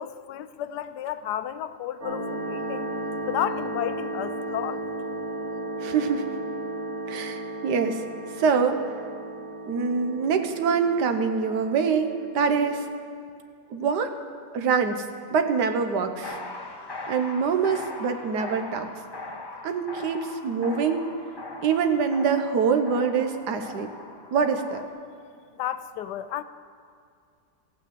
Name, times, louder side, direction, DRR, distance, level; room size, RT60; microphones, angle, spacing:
voice 1, 0.0-2.9 3.3-4.8 25.6-26.4, left 11 dB, 75° left, 12 dB, 1.1 m, -32 dB
sound 1, 2.0-12.8, right 1 dB, 40° right, 3.0 m, -35 dB
voice 2, 5.8-6.4 7.1-8.0 8.4-8.9 9.7-12.9 13.7-14.1 14.5-15.0 15.3-16.4 17.1-18.9 19.6-21.1 21.6-23.9 24.3-24.8, right 6 dB, 70° right, 7 dB, 1.5 m, -25 dB
sound 2, 16.2-24.9, left 2 dB, 30° left, 0.4 m, -40 dB
15.5 x 8.9 x 7.5 m, 2.3 s
omnidirectional pair, 1.9 m